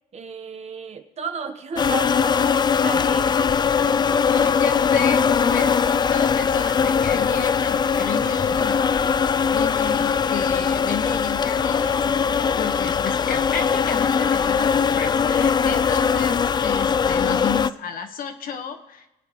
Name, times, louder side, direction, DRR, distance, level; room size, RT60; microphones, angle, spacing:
voice 1, 0.1-3.4, right 5 dB, 40° right, 6 dB, 1.3 m, -33 dB
sound 1, 1.8-17.7, left 6 dB, 25° left, 0.3 m, -21 dB
voice 2, 4.2-5.8 6.1-8.9 9.5-19.1, left 6 dB, 55° left, 4 dB, 1.5 m, -32 dB
22.5 x 8.6 x 3.2 m, 0.95 s
cardioid pair, 110°, 17 cm